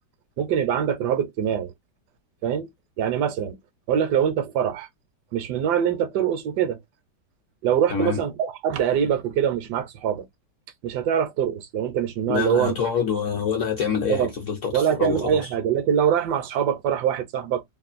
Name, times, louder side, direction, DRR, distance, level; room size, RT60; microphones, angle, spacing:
voice 1, 0.4-1.7 2.4-2.7 3.0-3.6 3.9-4.9 5.3-6.8 7.6-10.3 10.8-12.7 14.1-14.3 14.7-17.6, right 9 dB, 75° right, 1.1 m, -23 dB
voice 2, 7.9-8.2 12.3-15.5, left 6 dB, 60° left, 0.8 m, -26 dB
3.0 x 2.3 x 2.3 m
omnidirectional pair, 1.9 m